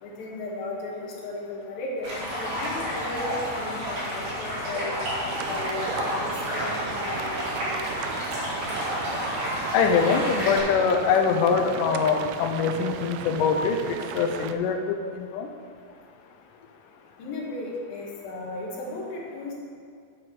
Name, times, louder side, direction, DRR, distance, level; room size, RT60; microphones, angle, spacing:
voice 1, 0.0-5.0 5.4-8.0 17.2-19.5, left 2 dB, 65° left, -3 dB, 3.3 m, -35 dB
Stream, 2.0-10.6, equal, 45° right, 4.0 m, -30 dB
sound 1, 5.3-14.5, right 9 dB, 85° right, 2.5 m, -36 dB
voice 2, 9.7-15.5, left 6 dB, 90° left, 4 dB, 1.8 m, -23 dB
9.3 x 7.6 x 6.2 m, 2.3 s
omnidirectional pair, 4.7 m